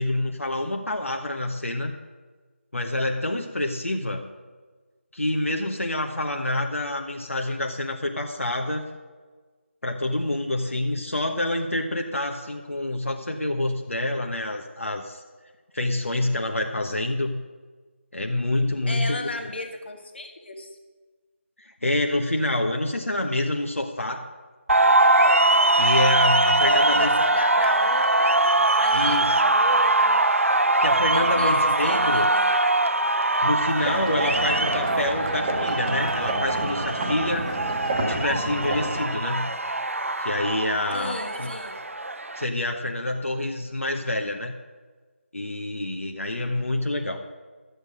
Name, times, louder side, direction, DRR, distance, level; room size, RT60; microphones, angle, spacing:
voice 1, 0.0-1.9 2.7-4.2 5.1-8.8 9.8-15.2 15.7-17.4 18.1-19.5 21.6-24.2 25.7-27.2 28.9-29.4 30.8-32.3 33.4-37.5 38.1-39.5 40.2-41.5 42.3-44.5 45.3-47.2, left 1 dB, 85° left, 3 dB, 1.1 m, -27 dB
voice 2, 18.9-20.8 26.6-28.3 28.8-30.2 31.1-31.6 31.8-32.7 40.9-41.8, left 2 dB, 55° left, 5 dB, 1.7 m, -34 dB
sound 1, 24.7-42.5, right 2 dB, 85° right, 0.8 m, -22 dB
sound 2, 33.8-39.0, right 1 dB, 15° right, 1.1 m, -30 dB
12.5 x 8.2 x 6.4 m, 1.4 s
figure-of-eight pair, 165°, 7 cm